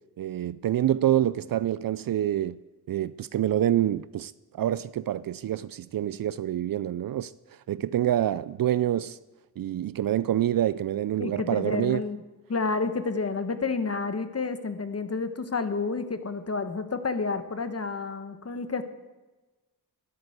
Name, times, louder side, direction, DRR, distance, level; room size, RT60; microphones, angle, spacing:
voice 1, 0.2-2.6 2.9-4.3 4.6-7.3 7.7-9.2 9.6-12.0, right 11 dB, 65° right, 0.5 m, -26 dB
voice 2, 11.2-12.2 12.5-18.8, left 4 dB, 40° left, 1.4 m, -30 dB
11.5 x 11.0 x 8.0 m
cardioid pair, 70°, 37 cm